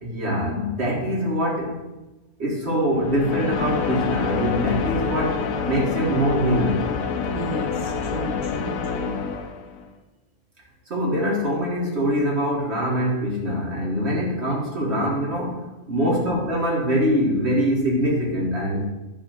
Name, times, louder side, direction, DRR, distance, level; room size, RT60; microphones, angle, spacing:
voice 1, 0.0-1.8 2.4-6.9 10.9-15.6 15.9-18.9, equal, 50° right, -2 dB, 2.2 m, -23 dB
sound 1, 2.9-9.8, left 5 dB, 75° left, 1.2 m, -27 dB
voice 2, 7.3-9.1 16.0-16.3, right 2 dB, 30° left, -2 dB, 1.6 m, -33 dB
10.0 x 3.5 x 6.5 m, 1.1 s
omnidirectional pair, 1.4 m